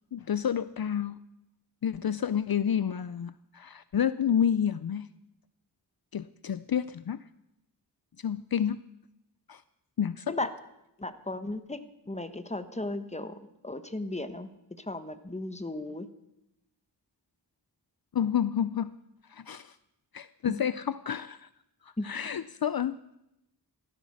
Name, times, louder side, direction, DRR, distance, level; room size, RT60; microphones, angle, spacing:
voice 1, 0.1-1.2 1.8-5.1 6.1-7.2 8.2-8.8 9.5-9.6 10.0-10.3 18.1-18.9 19.3-19.7 20.1-21.5 21.8-23.0, left 8 dB, 60° left, 15 dB, 0.5 m, -29 dB
voice 2, 11.0-11.8 12.1-14.5 14.8-16.1 20.5-20.6 22.0-22.1, left 2 dB, 15° left, 10 dB, 1.2 m, -35 dB
16.0 x 13.0 x 6.4 m, 0.87 s
wide cardioid pair, 65°, 41 cm